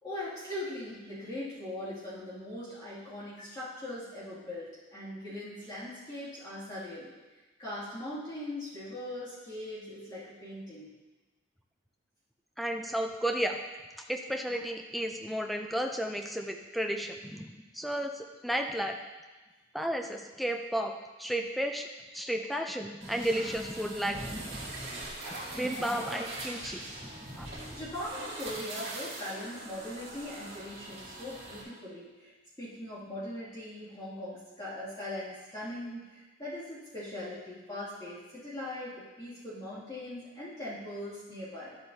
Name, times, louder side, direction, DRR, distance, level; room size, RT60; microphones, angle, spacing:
voice 1, 0.0-7.1 7.6-10.9 27.7-41.8, left 1 dB, 20° left, -11 dB, 2.6 m, -40 dB
voice 2, 12.6-13.6 14.1-19.0 19.7-20.9 21.2-24.6 25.2-26.9 27.4-27.5, equal, ahead, 4 dB, 0.5 m, -33 dB
sound 1, 23.0-31.6, right 2 dB, 50° right, 3.1 m, -42 dB
11.5 x 7.8 x 2.8 m, 1.2 s
head